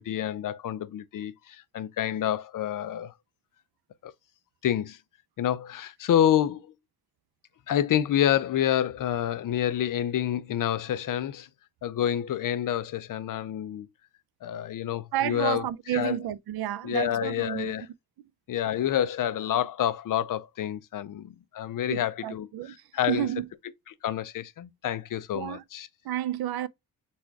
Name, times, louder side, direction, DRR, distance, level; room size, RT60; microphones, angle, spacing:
voice 1, 0.0-3.1 4.0-4.1 4.6-5.0 5.4-6.7 7.7-11.5 11.8-13.9 14.4-15.7 15.9-16.2 16.8-17.9 18.5-23.3 24.0-25.9, left 10 dB, 60° left, 0.5 m, -28 dB
voice 2, 15.1-17.7 21.9-22.8 23.1-23.5 25.3-25.6 26.0-26.7, right 12 dB, 80° right, 0.5 m, -31 dB
4.2 x 2.3 x 4.5 m
wide cardioid pair, 175°, 37 cm